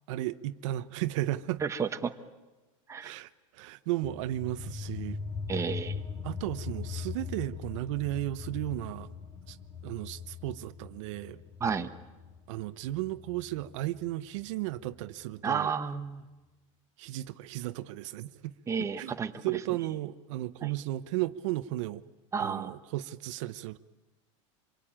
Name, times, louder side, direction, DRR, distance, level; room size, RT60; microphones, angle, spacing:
voice 1, 0.1-1.6 3.0-5.2 6.2-9.1 9.5-9.6 9.8-11.4 12.5-15.7 17.0-18.5 19.0-19.2 19.4-22.0 22.4-23.8, right 15 dB, 65° right, 0.9 m, -34 dB
voice 2, 1.6-2.1 2.9-3.1 5.5-6.0 11.6-11.9 15.4-16.2 18.7-19.3 20.6-20.7 22.3-22.7, right 6 dB, 15° right, 1.3 m, -31 dB
sound 1, 4.0-15.1, left 5 dB, 25° left, 2.8 m, -41 dB
26.0 x 23.0 x 8.9 m
supercardioid pair, 135°, 17 cm